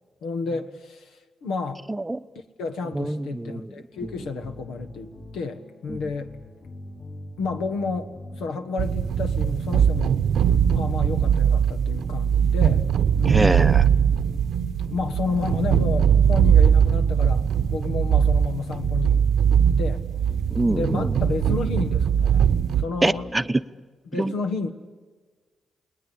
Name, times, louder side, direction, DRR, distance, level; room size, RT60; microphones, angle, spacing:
voice 1, 0.2-1.8 2.6-6.3 7.4-10.2 10.7-12.9 13.2-13.6 14.9-19.2 19.5-20.0 20.3-20.4 20.7-23.3 24.1-24.7, left 4 dB, 85° left, 8 dB, 1.5 m, -31 dB
voice 2, 1.9-2.2 2.9-3.7 5.9-6.0 13.2-13.8 20.5-21.2 23.0-23.6 24.1-24.3, right 2 dB, 20° right, 11 dB, 0.8 m, -25 dB
sound 1, 3.9-23.8, left 1 dB, 40° left, 3.8 m, -43 dB
sound 2, 8.8-22.8, right 8 dB, 80° right, 0.9 m, -20 dB
29.5 x 19.5 x 8.5 m, 1.4 s
supercardioid pair, 60°, 0 cm